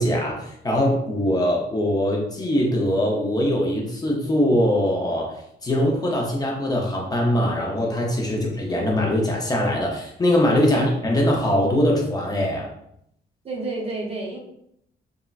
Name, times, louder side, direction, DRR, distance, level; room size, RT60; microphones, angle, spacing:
voice 1, 0.0-5.4 5.6-12.7, left 1 dB, 20° left, -2 dB, 0.5 m, -22 dB
voice 2, 13.4-14.4, right 2 dB, 35° right, 0 dB, 0.5 m, -30 dB
3.6 x 2.0 x 2.3 m, 0.74 s
cardioid pair, 160°, 18 cm